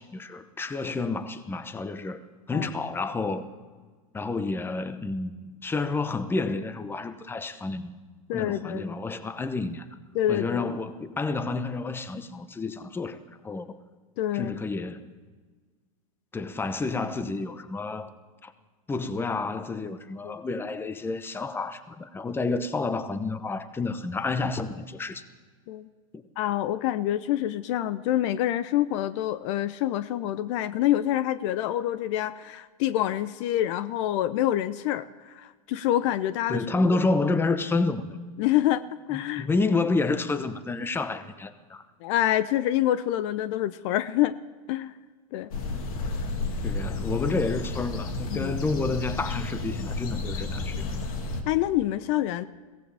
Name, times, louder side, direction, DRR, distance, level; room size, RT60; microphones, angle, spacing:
voice 1, 0.0-2.2 2.5-3.5 4.1-7.9 8.3-9.9 10.3-13.2 13.4-13.8 14.3-15.1 16.3-18.1 18.4-18.5 18.9-25.2 26.1-26.2 36.5-38.2 39.1-41.8 46.6-50.9, left 3 dB, 10° left, 1.0 m, -29 dB
voice 2, 8.3-8.8 10.1-10.7 14.2-14.6 20.2-20.3 25.7-25.9 26.4-36.6 38.4-38.8 39.1-39.5 42.0-44.4 44.7-44.9 45.3-45.5 48.3-48.6 51.5-52.4, left 13 dB, 55° left, 0.6 m, -26 dB
sound 1, 45.5-51.4, left 3 dB, 75° left, 2.4 m, -31 dB
22.0 x 17.0 x 3.5 m
hypercardioid pair, 115°, 19 cm